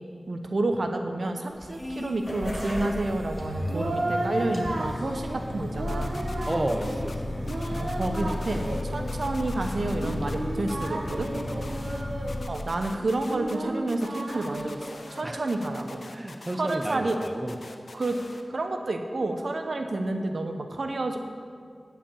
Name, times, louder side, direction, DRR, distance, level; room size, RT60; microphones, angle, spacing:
voice 1, 0.3-6.2 7.8-11.3 12.5-14.8 15.1-16.0 16.6-17.2 17.9-18.2 18.5-21.2, right 2 dB, 70° right, 5 dB, 0.8 m, -29 dB
sound 1, 1.5-12.4, left 1 dB, 20° left, 1.8 m, -33 dB
Singing, 3.6-5.4 5.7-7.1 7.4-9.2 9.6-12.4 12.9-15.6, right 1 dB, 85° right, 1.5 m, -34 dB
sound 2, 5.9-7.2 7.5-8.8 9.1-10.4 10.7-12.0 12.3-13.6 13.9-15.2 15.5-18.4, left 3 dB, 70° left, 0.8 m, -45 dB
voice 2, 6.5-7.5 11.5-12.0 15.2-15.5 16.1-17.6, right 1 dB, 25° right, 6 dB, 0.8 m, -32 dB
9.9 x 5.8 x 8.5 m, 2.1 s
wide cardioid pair, 55°, 0 cm